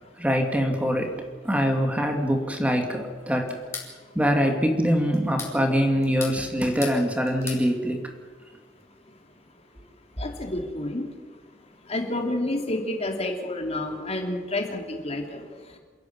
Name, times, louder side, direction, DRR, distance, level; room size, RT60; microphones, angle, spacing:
voice 1, 0.2-1.1 1.4-3.6 4.1-8.0, equal, 5° right, 4 dB, 2.6 m, -23 dB
sound 1, 3.5-3.9 5.1-5.6 6.0-7.0 7.2-7.6, left 4 dB, 15° left, 4.4 m, -36 dB
voice 2, 10.2-11.1 11.9-15.4, left 1 dB, 35° left, 3 dB, 3.0 m, -29 dB
28.0 x 11.0 x 9.7 m, 1.5 s
head